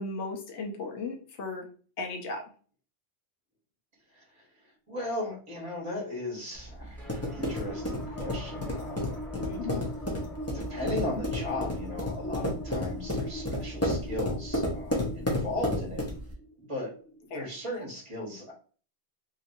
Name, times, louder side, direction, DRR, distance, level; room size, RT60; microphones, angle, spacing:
voice 1, 0.0-1.7 2.0-2.5 9.4-9.9 17.3-17.8, left 3 dB, 80° left, 2 dB, 1.0 m, -36 dB
voice 2, 4.9-9.1 10.5-16.0 16.6-17.0 17.3-18.5, left 1 dB, 30° right, -2 dB, 1.1 m, -36 dB
sound 1, 6.5-16.3, left 1 dB, 20° left, 0.5 m, -32 dB
sound 2, 7.0-17.6, equal, ahead, 0.9 m, -41 dB
2.9 x 2.7 x 2.6 m, 0.41 s
omnidirectional pair, 1.1 m